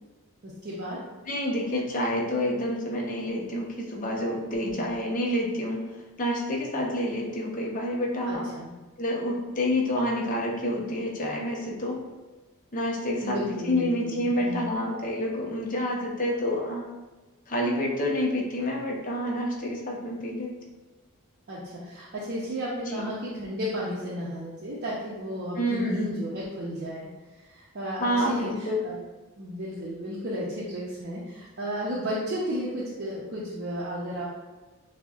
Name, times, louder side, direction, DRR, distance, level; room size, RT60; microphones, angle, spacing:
voice 1, 0.4-1.0 4.5-5.0 8.3-8.7 13.2-14.7 21.5-27.1 27.4-29.0 29.4-34.2, equal, 50° right, -6 dB, 0.6 m, -33 dB
voice 2, 1.3-5.8 6.2-8.5 9.0-12.0 12.7-16.9 17.5-20.5 22.9-23.1 25.6-26.1 28.0-28.8, left 1 dB, 35° left, -1 dB, 0.6 m, -28 dB
6.2 x 2.1 x 2.4 m, 1.2 s
head